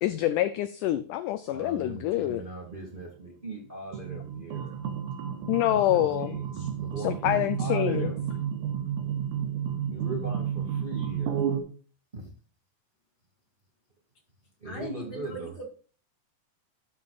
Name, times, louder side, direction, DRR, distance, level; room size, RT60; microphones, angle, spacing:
voice 1, 0.0-2.4 5.5-6.7 7.0-8.1, left 13 dB, 85° left, 12 dB, 1.8 m, -27 dB
voice 2, 1.5-4.7 5.7-8.2 9.9-11.4 12.1-12.3 14.6-15.5, right 1 dB, 20° right, -1 dB, 1.7 m, -39 dB
sound 1, 3.9-11.6, right 8 dB, 85° right, 3.0 m, -31 dB
voice 3, 14.6-15.7, right 2 dB, 35° left, 1 dB, 2.0 m, -40 dB
12.5 x 7.6 x 2.4 m, 0.39 s
omnidirectional pair, 4.2 m